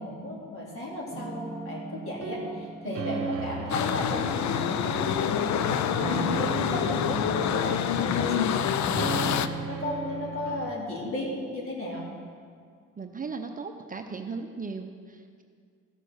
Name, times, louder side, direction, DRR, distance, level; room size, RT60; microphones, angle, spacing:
voice 1, 0.0-12.0, left 1 dB, 45° left, -4 dB, 4.0 m, -35 dB
sound 1, 1.1-10.7, right 4 dB, 50° right, 1.1 m, -36 dB
sound 2, 3.7-9.5, left 9 dB, 65° left, 0.6 m, -27 dB
voice 2, 13.0-15.4, right 4 dB, 25° right, 4 dB, 0.8 m, -37 dB
15.5 x 6.7 x 6.6 m, 2.1 s
cardioid pair, 90°, 30 cm